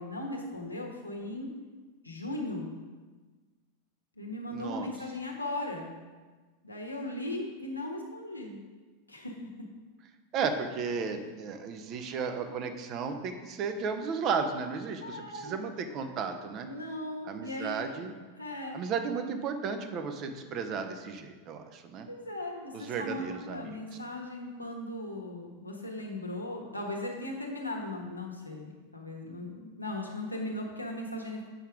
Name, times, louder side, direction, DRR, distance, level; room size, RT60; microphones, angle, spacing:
voice 1, 0.0-1.5 2.0-2.7 4.2-5.9 6.6-8.6 9.1-9.7 15.0-15.6 16.6-17.9 18.4-18.8 22.1-31.4, left 1 dB, 85° left, 0 dB, 1.3 m, -38 dB
voice 2, 4.5-4.9 10.3-16.7 17.2-18.1 18.7-22.1 22.7-23.8, right 5 dB, 35° right, 7 dB, 0.9 m, -34 dB
8.0 x 5.7 x 4.9 m, 1.3 s
figure-of-eight pair, 90°, 0 cm